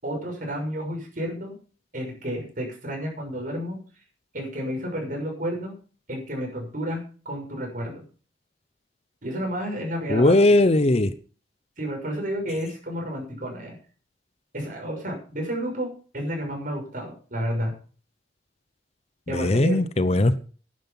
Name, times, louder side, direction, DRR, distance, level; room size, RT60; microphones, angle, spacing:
voice 1, 0.0-1.6 1.9-3.8 4.3-5.7 6.1-8.0 9.2-10.4 11.8-13.7 14.5-17.7 19.3-19.8, equal, 50° right, 6.5 m, -31 dB
voice 2, 10.1-11.1 19.3-20.4, left 2 dB, 35° left, 0.7 m, -19 dB
11.5 x 11.0 x 5.7 m
head